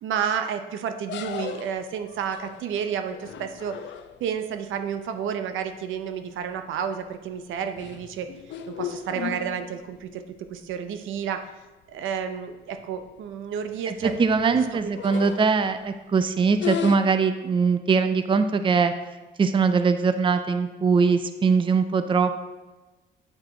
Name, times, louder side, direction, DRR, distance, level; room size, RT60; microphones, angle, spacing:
voice 1, 0.0-3.8 4.2-8.3 8.7-10.2 10.5-11.5 11.9-14.1 14.4-15.0, right 7 dB, 80° right, 8 dB, 0.6 m, -31 dB
sound 1, 1.1-4.4 6.0-6.3 6.7-7.1 7.5-10.0 10.5-10.6 10.9-11.0 11.8-11.9 12.2-12.4 12.7-13.1 13.7-15.9 16.5-17.0, left 9 dB, 70° left, 0.5 m, -36 dB
voice 2, 14.2-18.9 19.4-22.4, right 5 dB, 25° right, 10 dB, 0.5 m, -21 dB
8.7 x 4.6 x 3.8 m, 1.2 s
cardioid pair, 90°, 20 cm